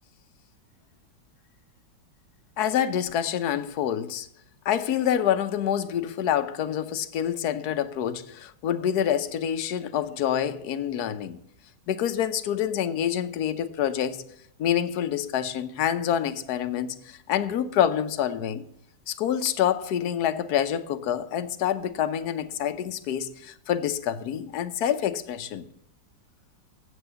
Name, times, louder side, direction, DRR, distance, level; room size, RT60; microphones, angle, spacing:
voice 1, 2.6-4.3 4.6-11.4 11.9-14.2 14.6-18.6 19.1-25.6, left 9 dB, 65° left, 1.1 m, -27 dB
8.0 x 7.9 x 6.7 m
omnidirectional pair, 2.0 m